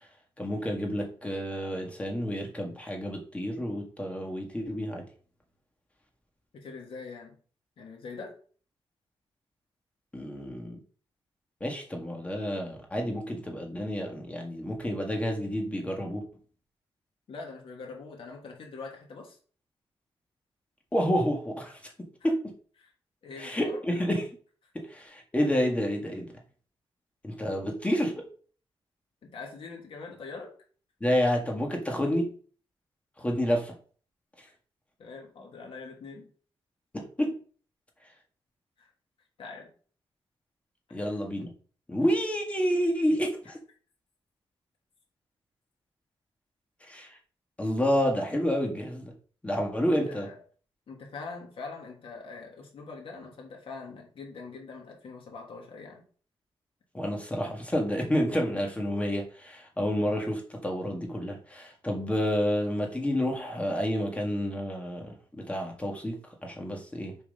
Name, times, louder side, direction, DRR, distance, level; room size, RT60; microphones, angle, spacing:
voice 1, 0.4-5.1 10.1-10.8 11.6-16.2 20.9-21.8 22.2-22.5 23.4-24.2 24.7-26.3 27.2-28.2 31.0-32.3 33.2-33.7 36.9-37.3 40.9-41.5 41.9-43.6 46.9-47.1 47.6-49.1 49.4-50.3 56.9-66.2 66.4-67.2, equal, 15° left, 1.9 m, -29 dB
voice 2, 6.5-7.4 7.8-8.4 17.3-19.4 22.2-22.3 22.8-22.9 23.2-23.8 29.2-30.6 35.0-36.3 38.8-38.9 39.4-39.7 40.9-41.2 43.4-43.6 49.9-50.4 50.9-56.0, left 4 dB, 65° left, 2.8 m, -43 dB
7.1 x 4.7 x 5.4 m
wide cardioid pair, 145°, 10 cm